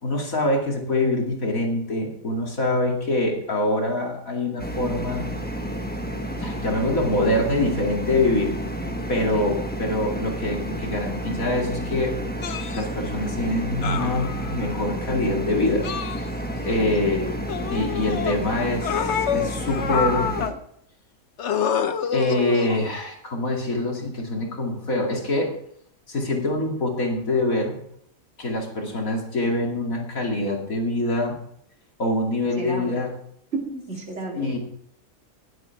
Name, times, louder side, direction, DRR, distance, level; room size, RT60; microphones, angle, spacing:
voice 1, 0.0-5.3 6.4-8.6 9.1-12.2 12.7-15.9 16.6-20.3 22.1-25.6 26.1-27.8 28.4-31.4 32.0-33.1 34.4-34.6, left 2 dB, 75° left, 0 dB, 2.8 m, -25 dB
sound 1, 4.6-20.5, right 1 dB, 5° left, 1.1 m, -31 dB
sound 2, 12.4-12.8 13.8-14.7 15.8-16.7 17.5-18.4 18.8-20.6 21.4-22.9 24.0-24.2, left 7 dB, 55° left, 1.1 m, -27 dB
voice 2, 32.6-33.0 33.5-34.6, right 2 dB, 50° right, 0 dB, 2.8 m, -33 dB
19.5 x 7.9 x 4.6 m, 0.71 s
omnidirectional pair, 1.5 m